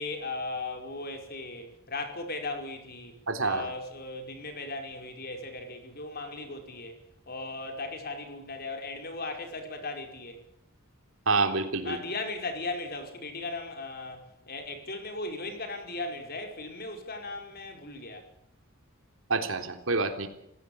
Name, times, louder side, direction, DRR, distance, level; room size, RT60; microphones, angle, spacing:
voice 1, 0.0-6.9 7.3-10.4 11.8-18.2, left 3 dB, 45° left, 5 dB, 5.2 m, -37 dB
voice 2, 3.3-3.7 11.3-12.0 19.3-20.3, right 3 dB, 70° right, 6 dB, 3.7 m, -27 dB
27.0 x 16.5 x 8.7 m, 0.78 s
head